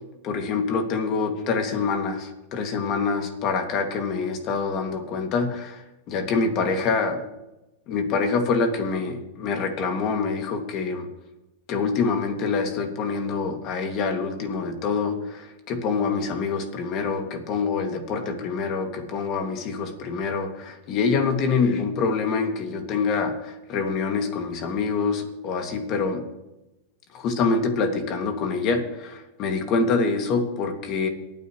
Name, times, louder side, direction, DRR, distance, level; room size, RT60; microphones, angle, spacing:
voice 1, 0.2-7.2 7.9-11.1 11.7-26.2 27.1-31.1, left 4 dB, 40° left, 4 dB, 2.3 m, -26 dB
27.0 x 9.5 x 3.2 m, 0.99 s
supercardioid pair, 135°, 0 cm